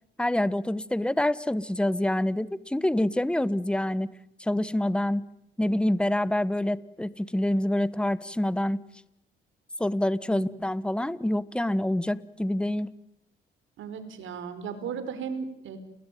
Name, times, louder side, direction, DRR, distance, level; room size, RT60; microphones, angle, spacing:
voice 1, 0.2-4.1 4.4-5.3 5.6-8.8 9.8-12.9, left 1 dB, 5° left, 17 dB, 1.2 m, -26 dB
voice 2, 13.8-15.8, right 6 dB, 75° right, 11 dB, 4.6 m, -36 dB
29.5 x 21.0 x 9.3 m, 0.81 s
cardioid pair, 90°, 20 cm